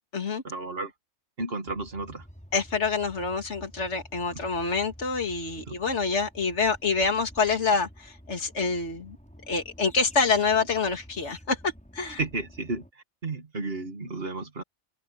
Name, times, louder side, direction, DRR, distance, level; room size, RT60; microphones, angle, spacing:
voice 1, 0.4-0.9 1.4-2.3 4.3-4.4 5.6-5.8 12.2-14.6, right 3 dB, 55° right, 2.5 m, -33 dB
sound-aggressive bird calls at beach, 1.7-12.9, equal, 5° left, 5.6 m, -50 dB
voice 2, 2.5-9.2 9.5-12.2, left 4 dB, 70° left, 2.6 m, -27 dB
open air
omnidirectional pair, 1.2 m